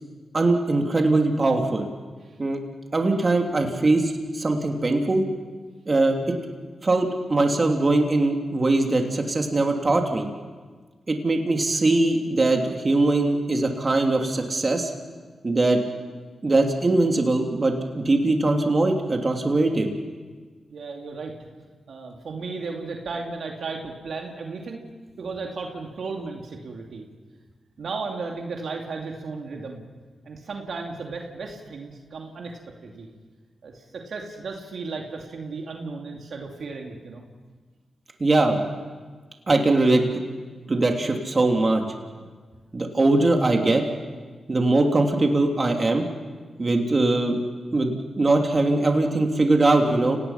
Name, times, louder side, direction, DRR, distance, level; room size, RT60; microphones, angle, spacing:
voice 1, 0.3-1.9 2.4-2.6 2.9-5.2 5.9-6.3 6.8-10.2 11.1-14.9 15.4-15.8 16.4-19.9 38.2-38.6 39.5-40.2 40.7-41.8 42.7-43.8 44.5-46.1 46.6-47.4 47.7-50.2, right 2 dB, 40° right, 2 dB, 3.1 m, -21 dB
voice 2, 20.7-21.4 21.9-24.8 25.2-27.0 27.8-29.8 30.2-33.1 33.6-37.3, right 4 dB, 70° right, 1 dB, 2.6 m, -35 dB
29.5 x 18.5 x 5.9 m, 1.4 s
cardioid pair, 50°, 0 cm